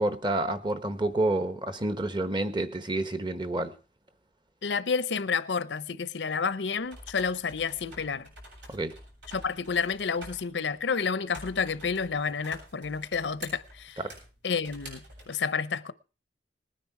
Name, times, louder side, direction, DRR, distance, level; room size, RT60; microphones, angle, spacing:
voice 1, 0.0-3.7 8.7-8.9 14.0-14.1, right 2 dB, 25° right, 1.0 m, -29 dB
voice 2, 4.6-8.3 9.3-14.0 14.4-15.9, left 5 dB, 85° left, 0.7 m, -30 dB
sound 1, 6.7-15.3, right 1 dB, 85° right, 7.7 m, -49 dB
19.0 x 9.7 x 4.8 m
head